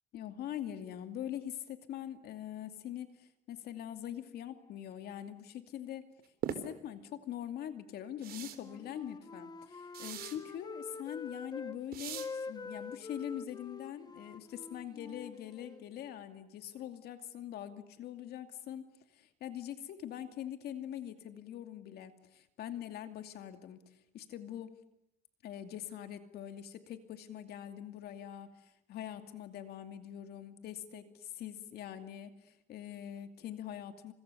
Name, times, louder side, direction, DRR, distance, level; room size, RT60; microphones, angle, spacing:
voice 1, 0.1-6.1 6.5-18.9 19.1-24.7 25.4-34.1, left 10 dB, 70° left, 8 dB, 2.5 m, -43 dB
sound 1, 6.4-6.6 8.2-8.6 9.9-10.4 11.9-12.3, right 10 dB, 65° right, 3.7 m, -39 dB
Wind instrument woodwind instrument, 8.5-11.8 12.1-15.8, left 4 dB, 25° left, 1.5 m, -46 dB
30.0 x 26.0 x 6.9 m, 0.79 s
cardioid pair, 110°, 17 cm